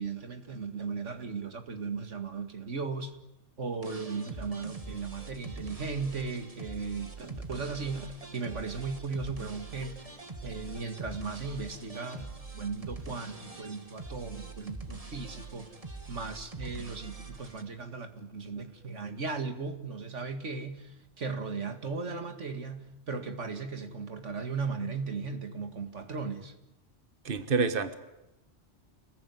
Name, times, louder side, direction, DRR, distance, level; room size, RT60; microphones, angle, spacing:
voice 1, 0.0-3.1 3.6-10.0 10.4-12.3 12.5-15.7 16.1-26.5, right 4 dB, 80° right, 2.3 m, -37 dB
sound 1, 3.8-17.6, right 3 dB, 30° right, 2.2 m, -44 dB
voice 2, 27.2-28.0, right 4 dB, 50° right, 1.6 m, -27 dB
28.0 x 20.5 x 9.5 m
omnidirectional pair, 1.2 m